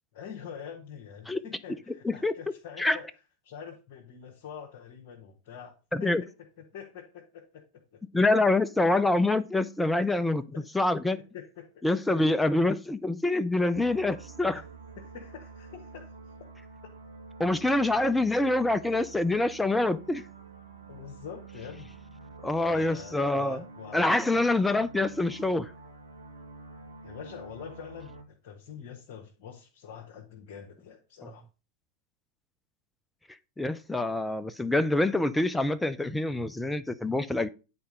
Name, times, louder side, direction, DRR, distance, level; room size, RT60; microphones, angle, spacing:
voice 1, 0.1-3.1 3.4-5.7 6.0-6.3 6.7-8.0 10.5-10.6 11.3-11.8 12.1-12.6 14.5-14.6 15.0-16.2 18.4-18.5 20.9-21.9 22.5-24.0 24.3-24.5 27.0-31.4, left 7 dB, 50° left, 1.3 m, -45 dB
voice 2, 5.9-6.2 8.1-10.4 10.7-11.2 11.8-14.6 17.4-20.2 22.4-23.6 23.9-25.7 33.6-37.5, left 2 dB, 5° left, 0.4 m, -26 dB
sound 1, 13.7-28.2, right 4 dB, 75° right, 1.7 m, -48 dB
9.6 x 4.2 x 5.0 m
figure-of-eight pair, 90°, 0 cm